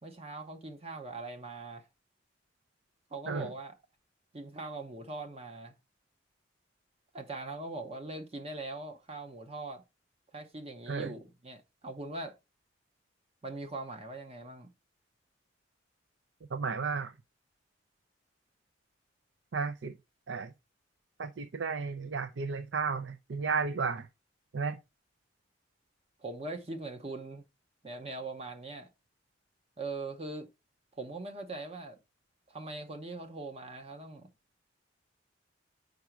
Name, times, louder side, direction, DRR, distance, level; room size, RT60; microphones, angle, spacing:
voice 1, 0.0-1.8 3.1-3.7 4.3-5.7 7.1-9.8 10.3-12.3 13.4-14.7 26.2-27.4 27.8-28.9 29.8-30.5 30.9-32.0 32.5-34.3, right 2 dB, 35° right, 0.8 m, -41 dB
voice 2, 16.5-17.1 19.5-20.0 20.3-20.5 21.2-24.1 24.5-24.8, right 5 dB, 70° right, 0.5 m, -33 dB
5.3 x 4.9 x 4.5 m
head